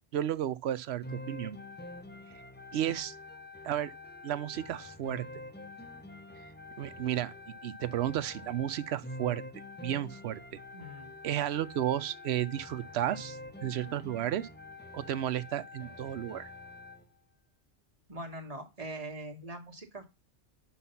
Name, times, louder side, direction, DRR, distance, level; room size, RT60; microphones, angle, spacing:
voice 1, 0.1-1.6 2.7-3.1 3.6-3.9 4.2-5.2 6.8-7.3 7.6-9.4 9.8-10.4 11.2-14.5 14.9-16.5, right 11 dB, 70° right, 0.8 m, -33 dB
sound 1, 1.0-17.1, left 2 dB, 10° left, 0.6 m, -46 dB
voice 2, 10.7-11.1 18.1-20.1, right 1 dB, 30° right, 1.6 m, -42 dB
5.7 x 5.4 x 5.7 m
omnidirectional pair, 1.2 m